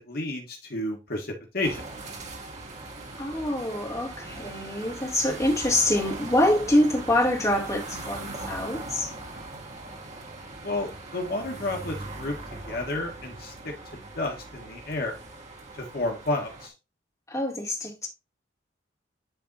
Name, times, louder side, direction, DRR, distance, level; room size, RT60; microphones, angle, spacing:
voice 1, 0.0-1.8 10.6-12.4 12.7-13.7 14.1-15.2 15.7-16.7, left 2 dB, 55° left, 1.5 m, -31 dB
sound 1, 1.6-16.7, right 2 dB, 40° right, 2.3 m, -40 dB
voice 2, 3.2-9.1 17.3-18.1, left 1 dB, 20° left, 2.5 m, -25 dB
10.5 x 3.6 x 4.1 m
head